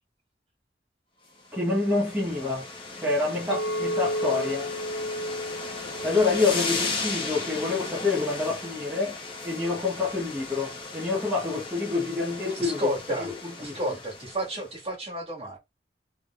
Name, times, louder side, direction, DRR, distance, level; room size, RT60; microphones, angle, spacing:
sound 1, 1.4-14.7, left 3 dB, 30° left, 1.0 m, -36 dB
voice 1, 1.5-2.6 3.0-4.7 6.0-9.2 9.4-12.9 13.2-13.3 13.6-13.8, left 3 dB, 10° right, 1.0 m, -27 dB
Chink clink, 3.5-7.8, equal, 85° left, 1.2 m, -33 dB
voice 2, 12.6-13.3 13.6-15.6, right 1 dB, 30° right, 1.8 m, -32 dB
3.8 x 3.3 x 2.4 m
head